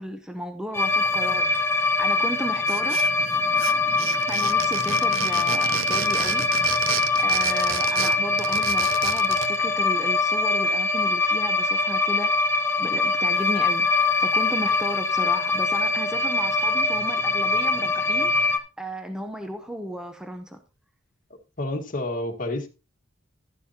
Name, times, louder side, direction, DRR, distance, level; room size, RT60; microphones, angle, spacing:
voice 1, 0.0-3.0 4.3-6.4 7.2-12.3 12.8-20.6, equal, 5° right, 0.8 m, -34 dB
sound 1, 0.7-18.6, left 3 dB, 10° left, 1.2 m, -23 dB
sound 2, 2.7-3.3 3.6-9.5, right 9 dB, 80° right, 0.7 m, -31 dB
voice 2, 21.6-22.7, left 1 dB, 45° left, 1.7 m, -29 dB
12.0 x 11.0 x 2.8 m
head